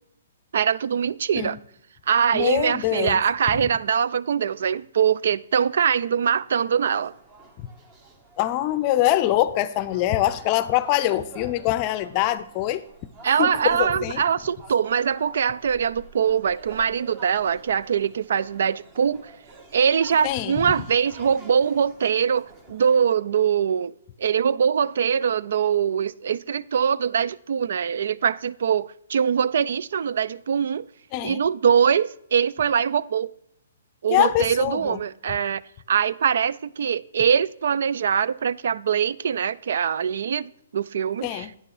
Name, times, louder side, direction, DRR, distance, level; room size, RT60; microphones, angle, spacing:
voice 1, 0.5-1.6 2.1-7.1 13.2-19.2 19.7-23.9 24.2-30.8 31.2-33.3 34.0-35.6 35.9-41.5, right 7 dB, 65° right, 0.3 m, -23 dB
voice 2, 2.3-3.2 8.4-12.8 13.4-13.5 13.8-14.2 20.2-20.7 31.1-31.4 34.1-35.0 41.2-41.5, left 14 dB, 35° left, 0.5 m, -23 dB
sound 1, 7.0-23.2, right 3 dB, 25° right, 1.4 m, -48 dB
9.2 x 6.0 x 4.9 m
hypercardioid pair, 145°, 0 cm